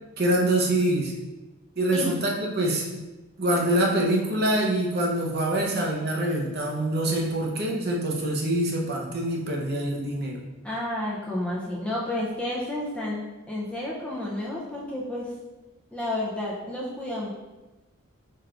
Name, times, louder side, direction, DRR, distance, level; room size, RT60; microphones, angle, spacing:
voice 1, 0.2-1.1 1.8-3.0 3.4-10.4, right 1 dB, 45° right, -1 dB, 0.7 m, -25 dB
voice 2, 10.6-15.3 15.9-17.3, left 1 dB, 5° left, -5 dB, 0.5 m, -31 dB
4.7 x 4.6 x 2.5 m, 1.1 s
head